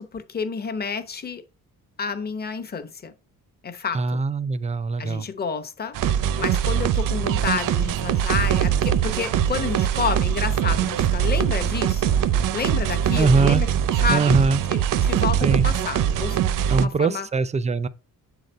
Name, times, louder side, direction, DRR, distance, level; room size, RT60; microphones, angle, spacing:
voice 1, 0.0-1.4 2.0-3.1 3.6-4.2 5.0-5.9 6.4-12.1 12.5-13.7 14.0-14.4 14.7-17.3, left 5 dB, 30° left, 0.8 m, -29 dB
voice 2, 3.9-5.3 13.2-13.6 14.1-14.6 15.4-15.7 16.7-17.9, right 4 dB, 20° right, 0.4 m, -22 dB
sound 1, 5.9-16.9, right 9 dB, 70° right, 0.6 m, -22 dB
7.3 x 4.0 x 4.3 m
cardioid pair, 120°, 34 cm